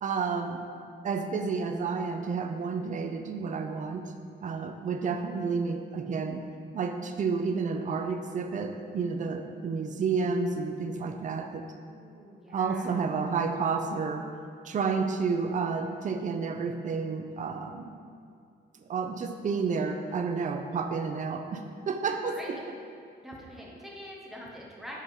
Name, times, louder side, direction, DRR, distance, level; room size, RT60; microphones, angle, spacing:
voice 1, 0.0-0.6 1.0-4.1 4.4-6.4 6.7-11.6 12.5-14.3 14.6-18.0 18.9-22.6, right 5 dB, 45° right, 5 dB, 0.6 m, -30 dB
voice 2, 11.9-12.9 22.3-22.6 23.2-25.0, equal, ahead, -4 dB, 1.4 m, -44 dB
8.3 x 4.7 x 5.3 m, 2.3 s
wide cardioid pair, 140°, 19 cm